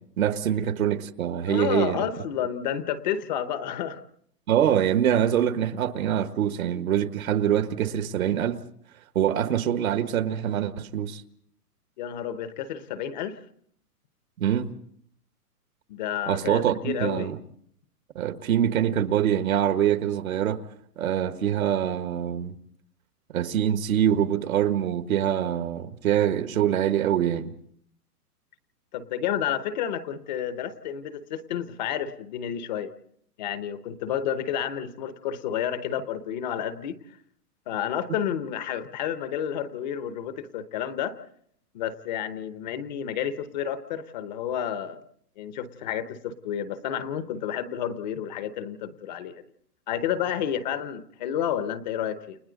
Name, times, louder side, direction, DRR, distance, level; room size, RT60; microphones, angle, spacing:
voice 1, 0.0-2.0 4.5-8.6 9.1-11.2 14.4-14.7 16.3-17.4 18.1-20.6 21.0-22.5 23.3-27.5, right 10 dB, 60° right, 1.6 m, -24 dB
voice 2, 1.5-4.0 12.0-13.4 15.9-17.3 28.9-32.9 33.4-37.0 37.7-41.1 41.7-45.0 45.4-49.4 49.9-52.4, left 9 dB, 30° left, 0.9 m, -30 dB
29.5 x 27.0 x 3.9 m
hypercardioid pair, 155°, 47 cm